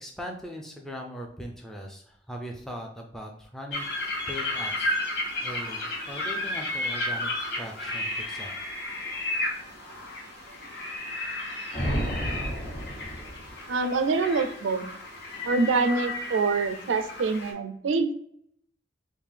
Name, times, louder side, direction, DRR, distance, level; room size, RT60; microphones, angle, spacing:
voice 1, 0.0-3.9 4.3-5.0 5.4-8.5, equal, ahead, 1 dB, 0.3 m, -40 dB
sound 1, 3.7-17.5, left 1 dB, 60° left, 1.0 m, -33 dB
sound 2, 11.7-13.7, equal, 30° left, 1.1 m, -31 dB
voice 2, 13.7-14.9 15.4-18.1, right 4 dB, 85° right, 9 dB, 0.4 m, -25 dB
3.6 x 2.5 x 3.2 m, 0.66 s
head